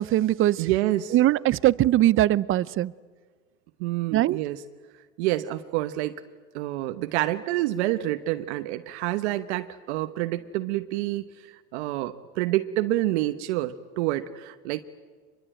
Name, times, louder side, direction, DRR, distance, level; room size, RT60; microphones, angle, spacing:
voice 1, 0.0-0.7 1.1-2.9 4.1-4.4, right 14 dB, 35° right, 0.6 m, -21 dB
voice 2, 0.6-1.1 3.8-4.6 5.2-6.2 6.5-14.8, right 15 dB, 75° right, 1.1 m, -28 dB
25.0 x 22.0 x 9.0 m
supercardioid pair, 100°, 34 cm